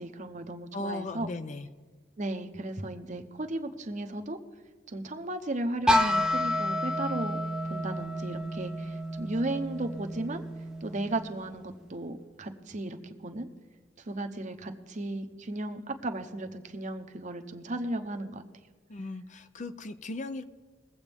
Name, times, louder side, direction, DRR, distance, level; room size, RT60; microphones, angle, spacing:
voice 1, 0.0-1.3 2.2-4.4 4.9-7.4 7.6-10.4 10.8-13.5 14.0-18.4, right 2 dB, 40° right, 6 dB, 0.9 m, -35 dB
voice 2, 0.7-1.7 18.9-20.4, left 2 dB, 40° left, 10 dB, 0.5 m, -37 dB
sound 1, 5.9-11.7, left 1 dB, 5° right, 0.6 m, -30 dB
21.5 x 7.9 x 3.5 m, 1.4 s
head